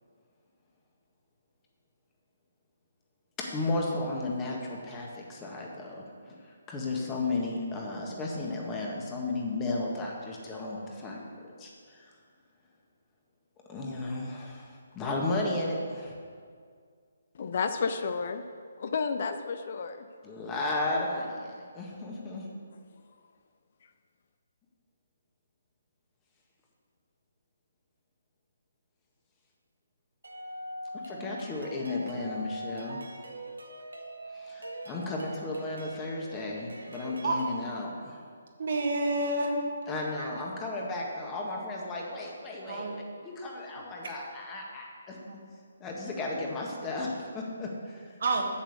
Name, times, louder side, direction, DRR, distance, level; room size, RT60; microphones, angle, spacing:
voice 1, 3.4-11.2 11.6-12.1 13.7-16.2 20.2-22.5 31.0-33.0 34.3-38.3 39.9-45.2 45.8-48.2, left 2 dB, 20° left, -1 dB, 1.6 m, -34 dB
voice 2, 17.3-18.4 18.8-20.1, left 5 dB, 50° left, 8 dB, 0.5 m, -31 dB
sound 1, 30.2-37.6, right 1 dB, 85° right, 1.3 m, -43 dB
voice 3, 38.6-39.6 40.2-40.3 42.7-42.9 45.3-45.4 48.2-48.4, right 2 dB, 60° right, 2 dB, 1.5 m, -28 dB
7.4 x 6.8 x 6.7 m, 2.1 s
figure-of-eight pair, 145°, 0 cm